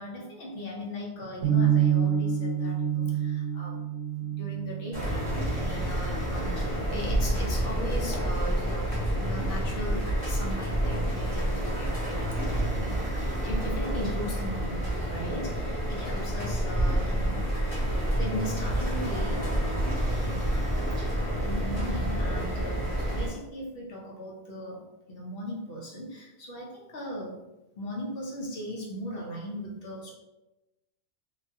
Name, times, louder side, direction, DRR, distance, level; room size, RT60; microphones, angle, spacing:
voice 1, 0.0-3.8 4.2-12.5 12.8-17.5 17.8-19.4 19.9-20.5 21.4-27.4 27.8-30.1, equal, 60° left, -3 dB, 0.9 m, -38 dB
sound 1, 1.4-7.5, right 8 dB, 70° right, 1.1 m, -28 dB
sound 2, 4.9-23.3, right 1 dB, 25° left, 1.3 m, -29 dB
2.8 x 2.2 x 2.7 m, 0.98 s
omnidirectional pair, 1.2 m